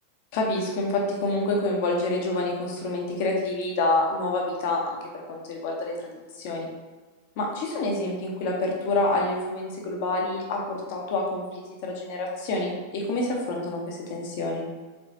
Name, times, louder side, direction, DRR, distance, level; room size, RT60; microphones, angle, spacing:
voice 1, 0.3-5.0 5.3-6.1 6.4-6.7 7.4-14.6, left 2 dB, 50° left, -1 dB, 1.0 m, -27 dB
4.5 x 4.2 x 2.7 m, 1.3 s
figure-of-eight pair, 90°, 0 cm